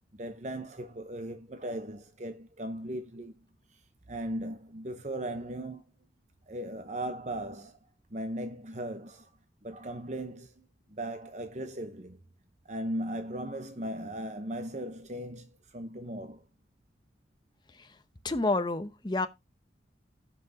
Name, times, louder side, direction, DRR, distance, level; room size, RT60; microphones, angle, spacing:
voice 1, 0.1-3.3 4.1-5.8 6.5-7.8 8.1-9.3 9.6-12.2 12.6-16.5, right 1 dB, 40° right, 0.9 m, -38 dB
voice 2, 18.2-19.3, left 2 dB, 25° left, 0.8 m, -28 dB
16.0 x 5.9 x 2.8 m
head